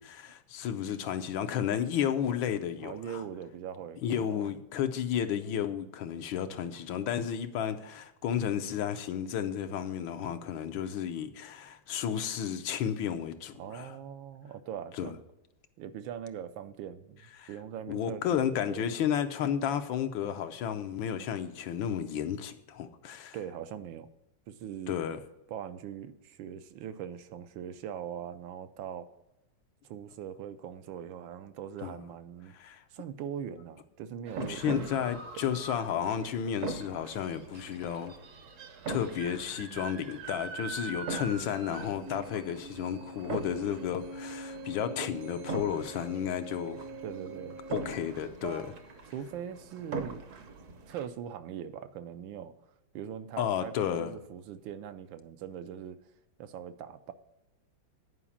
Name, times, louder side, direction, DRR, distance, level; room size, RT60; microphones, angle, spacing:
voice 1, 0.0-3.2 4.0-14.0 15.0-15.1 17.4-17.5 17.9-23.4 24.9-25.2 31.8-31.9 32.5-32.8 34.5-38.1 38.9-46.9 47.7-48.7 53.4-54.1, left 9 dB, 75° left, 8 dB, 1.5 m, -32 dB
voice 2, 2.8-4.5 13.6-15.2 15.8-18.9 23.3-24.1 24.5-25.0 25.5-29.1 29.8-32.6 32.9-35.0 35.3-35.6 35.9-36.1 47.0-47.6 49.1-50.5 50.9-52.5 52.9-56.0 56.4-57.1, right 9 dB, 80° right, 11 dB, 1.4 m, -41 dB
sound 1, 34.2-51.1, right 3 dB, 50° right, 1.0 m, -41 dB
9.9 x 4.9 x 7.1 m, 0.95 s
omnidirectional pair, 2.2 m